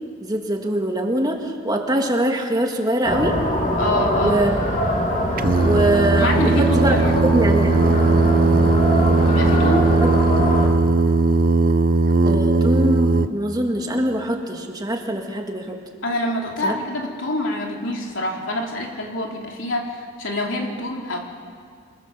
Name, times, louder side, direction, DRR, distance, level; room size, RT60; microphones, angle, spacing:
voice 1, 0.2-3.4 4.2-4.5 5.6-7.0 7.3-7.8 12.2-15.8 16.6-16.7, right 1 dB, 20° right, 2 dB, 1.9 m, -23 dB
sound 1, 3.0-10.7, equal, 40° left, 2.9 m, -23 dB
voice 2, 3.8-4.4 6.2-7.2 9.2-9.9 16.0-21.2, left 1 dB, 75° left, 1 dB, 3.1 m, -26 dB
Singing, 5.4-13.3, right 3 dB, 45° right, 0.7 m, -18 dB
28.0 x 16.5 x 6.9 m, 2.2 s
head